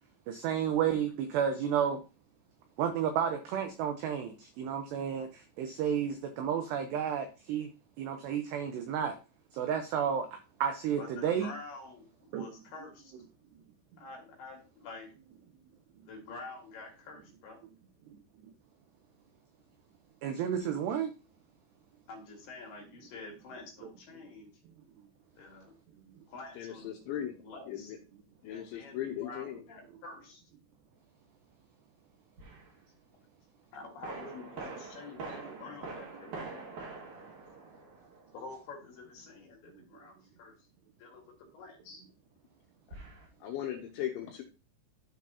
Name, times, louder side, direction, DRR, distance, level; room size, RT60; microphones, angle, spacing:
voice 1, 0.3-2.0 2.8-7.7 8.0-9.2 9.5-10.3 10.6-11.5 12.3-12.4 20.2-21.1, right 8 dB, 90° right, 6 dB, 2.4 m, -31 dB
voice 2, 11.0-13.1 14.0-15.2 16.0-17.6 22.1-24.6 25.4-25.7 26.3-26.9 27.4-27.9 28.5-30.4 33.7-36.6 38.3-40.6 41.0-42.0, left 3 dB, 65° left, 1 dB, 3.1 m, -48 dB
voice 3, 26.6-27.3 27.7-28.0 28.4-29.6 42.9-43.0 43.4-44.4, left 11 dB, 80° left, 2 dB, 2.9 m, -38 dB
sound 1, 32.4-32.7 34.0-38.4 42.9-43.3, right 3 dB, 55° right, 2.3 m, -44 dB
13.5 x 4.6 x 2.7 m, 0.31 s
omnidirectional pair, 5.9 m